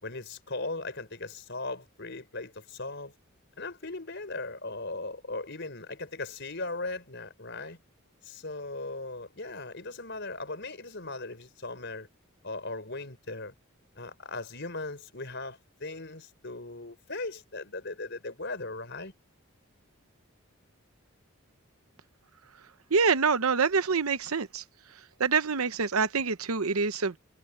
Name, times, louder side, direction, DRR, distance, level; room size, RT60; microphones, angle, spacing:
voice 1, 0.0-3.1 3.6-7.8 8.2-12.1 12.4-13.5 13.9-19.1, left 2 dB, 55° left, 5.0 m, -38 dB
voice 2, 22.9-24.6 25.2-27.2, right 5 dB, 85° right, 0.9 m, -26 dB
head